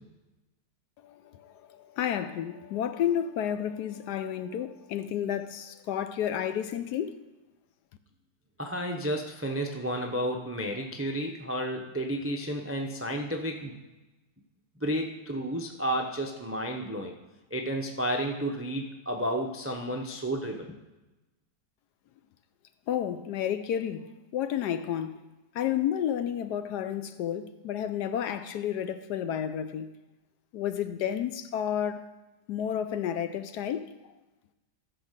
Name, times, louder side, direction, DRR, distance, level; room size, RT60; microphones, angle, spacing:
voice 1, 1.0-7.2 22.9-24.1 24.3-25.2 25.5-29.9 30.5-32.0 32.5-33.9, left 9 dB, 75° left, 1.1 m, -31 dB
voice 2, 8.6-13.8 14.8-17.2 17.5-20.7, equal, 20° right, 0.3 m, -32 dB
14.5 x 5.0 x 6.6 m
omnidirectional pair, 1.9 m